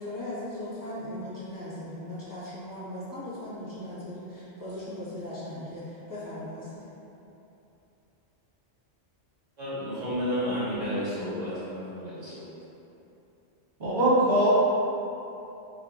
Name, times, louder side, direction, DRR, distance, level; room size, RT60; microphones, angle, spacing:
voice 1, 0.0-6.8, left 1 dB, 20° left, -11 dB, 1.0 m, -38 dB
voice 2, 9.6-12.4, equal, 40° right, -11 dB, 1.3 m, -31 dB
voice 3, 13.8-14.5, right 1 dB, 65° right, -9 dB, 1.2 m, -21 dB
5.1 x 2.6 x 2.3 m, 2.9 s
omnidirectional pair, 1.2 m